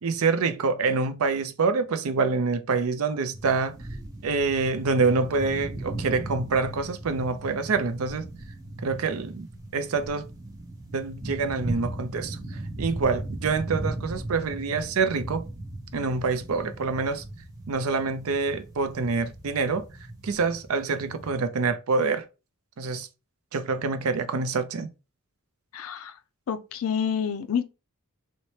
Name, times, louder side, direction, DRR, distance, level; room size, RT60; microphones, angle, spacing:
voice 1, 0.0-3.7 4.2-8.2 8.8-10.3 10.9-12.4 12.8-15.5 15.9-17.2 17.7-19.8 20.2-22.3 22.8-23.1 23.5-24.9, right 4 dB, 70° right, 0.5 m, -26 dB
sound 1, 3.3-21.3, right 1 dB, 15° right, 0.7 m, -37 dB
voice 2, 25.7-26.2 26.5-27.6, left 7 dB, 70° left, 0.4 m, -28 dB
4.1 x 2.1 x 3.1 m
head